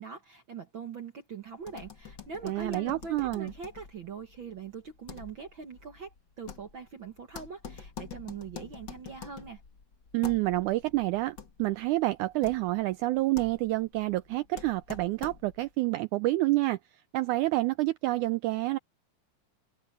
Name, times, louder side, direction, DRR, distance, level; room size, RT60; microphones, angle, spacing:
voice 1, 0.0-9.6, right 5 dB, 55° right, 1.4 m, -42 dB
sound 1, 1.6-15.7, left 6 dB, 40° left, 1.9 m, -47 dB
voice 2, 2.4-3.5 10.1-16.8 17.1-18.8, right 18 dB, 85° right, 1.7 m, -28 dB
omnidirectional pair, 4.0 m